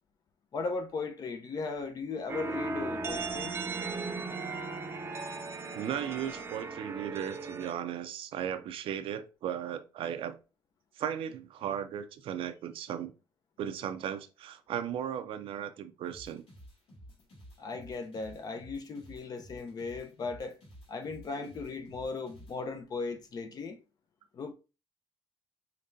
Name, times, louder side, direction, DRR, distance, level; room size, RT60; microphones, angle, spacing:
voice 1, 0.5-3.6 17.6-20.6 20.9-23.8 24.3-24.5, left 4 dB, 45° left, 0.7 m, -37 dB
sound 1, 2.3-7.7, right 3 dB, 25° right, 0.6 m, -37 dB
voice 2, 5.7-10.4 11.0-13.1 13.6-16.4 21.4-21.5, right 9 dB, 75° right, 0.6 m, -36 dB
sound 2, 16.1-22.6, equal, 75° left, 2.5 m, -52 dB
5.2 x 3.3 x 2.7 m
cardioid pair, 130°, 9 cm